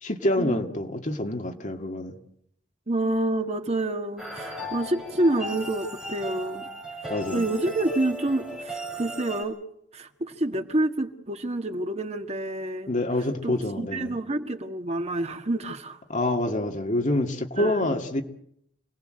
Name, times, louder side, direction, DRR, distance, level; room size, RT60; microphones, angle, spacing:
voice 1, 0.0-2.2 7.1-7.5 12.9-14.2 16.1-18.2, left 1 dB, 45° left, 4 dB, 2.3 m, -27 dB
voice 2, 2.9-6.7 7.0-9.6 9.9-12.9 13.4-16.0 17.6-18.0, right 1 dB, 40° right, 6 dB, 1.7 m, -28 dB
sound 1, 4.2-9.4, equal, 5° right, 7.5 m, -36 dB
28.0 x 19.0 x 7.8 m, 0.74 s
head